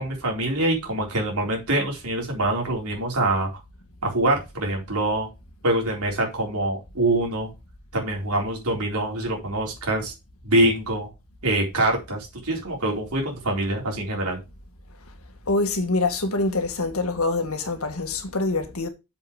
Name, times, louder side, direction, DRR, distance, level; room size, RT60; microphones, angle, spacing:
voice 1, 0.0-3.5 4.0-5.3 5.6-7.5 7.9-10.1 10.4-11.1 11.4-14.4, right 1 dB, 85° right, 4.0 m, -24 dB
voice 2, 15.5-18.9, left 3 dB, 80° left, 1.7 m, -25 dB
6.9 x 5.8 x 5.0 m
head